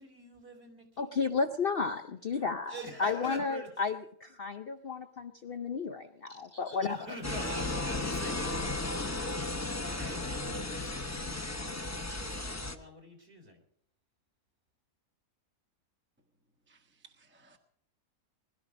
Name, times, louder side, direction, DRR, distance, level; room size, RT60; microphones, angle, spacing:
voice 1, 0.0-1.1 2.7-3.9 6.7-13.6, equal, 45° right, 3 dB, 3.9 m, -46 dB
voice 2, 1.0-7.0, left 4 dB, 50° left, 7 dB, 0.8 m, -33 dB
sound 1, 7.2-12.7, left 2 dB, 15° left, 0.7 m, -35 dB
voice 3, 16.7-17.6, right 5 dB, 10° right, 4 dB, 1.1 m, -61 dB
21.0 x 12.5 x 5.1 m, 0.69 s
omnidirectional pair, 1.5 m